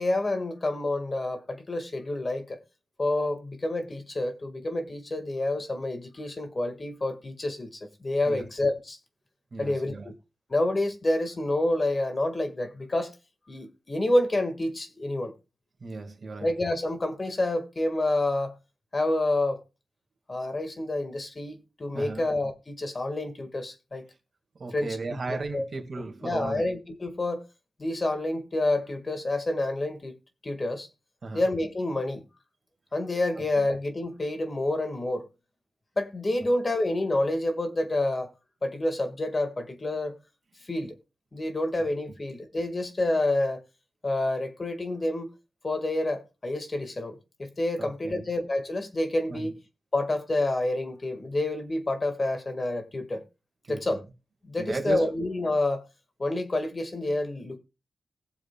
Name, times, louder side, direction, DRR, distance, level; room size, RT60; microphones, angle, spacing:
voice 1, 0.0-2.6 3.0-9.0 9.6-10.2 10.5-13.1 13.5-15.3 16.4-18.5 18.9-19.6 20.3-24.1 24.7-25.6 26.2-27.4 27.8-30.2 30.4-30.9 31.3-32.2 32.9-35.3 36.0-38.3 38.6-40.2 40.6-40.9 41.3-43.6 44.0-45.3 45.6-49.5 49.9-53.2 53.7-54.0 54.4-55.8 56.2-57.6, left 2 dB, 40° left, 1.7 m, -28 dB
voice 2, 9.5-10.1 15.8-16.5 21.9-22.3 24.6-26.6 31.2-31.4 33.6-33.7 47.8-48.3 49.3-49.5 53.6-54.0 54.6-55.2, right 3 dB, 55° right, 1.9 m, -36 dB
20.5 x 7.2 x 2.3 m
cardioid pair, 75°, 0 cm